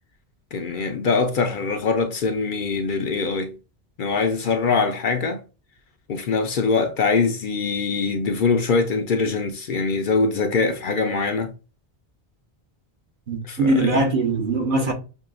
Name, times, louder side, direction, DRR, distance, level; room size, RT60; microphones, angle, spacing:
voice 1, 0.5-3.5 4.0-5.4 6.1-11.5 13.5-14.0, left 4 dB, 60° left, 0.7 m, -23 dB
voice 2, 13.3-14.9, right 2 dB, 55° right, 1.1 m, -21 dB
6.2 x 2.3 x 2.4 m
omnidirectional pair, 1.0 m